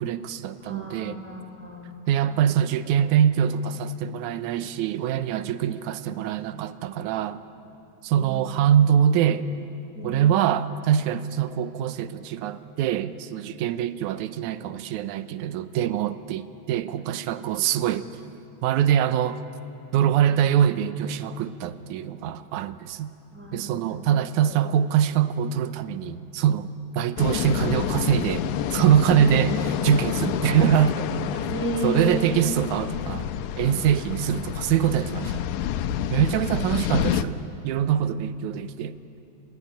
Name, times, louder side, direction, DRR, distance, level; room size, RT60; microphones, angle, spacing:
voice 1, 0.0-1.2 2.1-7.4 8.0-9.4 10.0-18.1 18.6-19.4 19.9-23.1 23.5-26.7 26.9-31.1 31.3-31.5 31.8-33.3 33.6-35.5 36.1-37.4 37.6-39.0, right 9 dB, 85° right, 12 dB, 2.2 m, -23 dB
voice 2, 0.6-1.9 2.2-2.5 3.0-3.1 8.1-8.6 9.9-10.5 19.9-20.4 23.3-24.1 24.4-24.7 29.2-29.6 31.5-32.7 36.6-36.7, left 1 dB, 5° right, 2 dB, 3.0 m, -34 dB
sound 1, 27.2-37.2, left 10 dB, 85° left, 2.2 m, -28 dB
26.0 x 18.0 x 9.9 m, 2.7 s
omnidirectional pair, 3.4 m